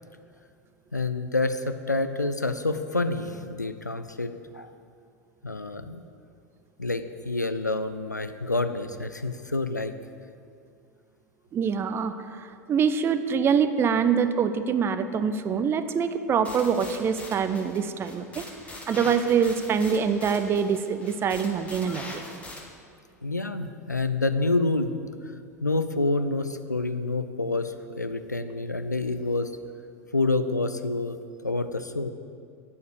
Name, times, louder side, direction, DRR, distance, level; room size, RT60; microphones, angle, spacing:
voice 1, 0.9-4.7 5.4-6.1 6.8-9.9 23.2-25.3 25.6-29.5 30.1-32.1, left 2 dB, 90° left, 10 dB, 0.4 m, -28 dB
voice 2, 11.5-18.4 18.9-22.2, right 6 dB, 25° right, 11 dB, 0.5 m, -25 dB
sound 1, 16.4-22.6, left 1 dB, 15° left, 1.5 m, -42 dB
8.3 x 6.6 x 6.8 m, 2.3 s
figure-of-eight pair, 85°, 9 cm